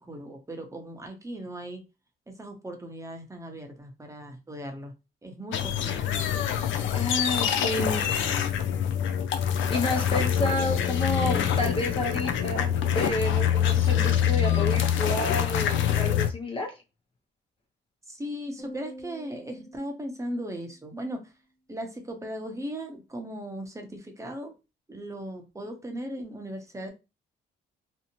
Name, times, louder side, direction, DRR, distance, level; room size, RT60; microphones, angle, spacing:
voice 1, 0.1-1.8 2.3-4.9 5.2-6.3 9.6-10.2 18.1-21.2 21.7-24.5 24.9-26.9, equal, 15° right, 3 dB, 0.7 m, -38 dB
sound 1, 5.5-16.3, left 9 dB, 75° left, 0.4 m, -25 dB
voice 2, 6.9-8.0 9.7-16.7, left 2 dB, 25° left, 1 dB, 0.6 m, -30 dB
sound 2, 18.6-21.0, right 1 dB, ahead, 1.0 m, -46 dB
2.7 x 2.1 x 2.8 m, 0.27 s
cardioid pair, 90°, 20 cm